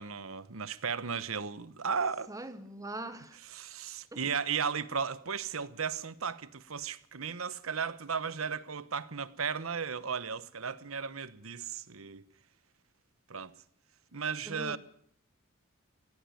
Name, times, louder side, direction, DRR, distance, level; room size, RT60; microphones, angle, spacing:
voice 1, 0.0-2.3 3.5-12.2 13.3-13.5 14.1-14.8, right 6 dB, 90° right, 1.1 m, -35 dB
voice 2, 2.3-3.4 4.1-4.2 14.4-14.8, right 2 dB, 15° right, 1.4 m, -41 dB
17.5 x 16.5 x 9.3 m
head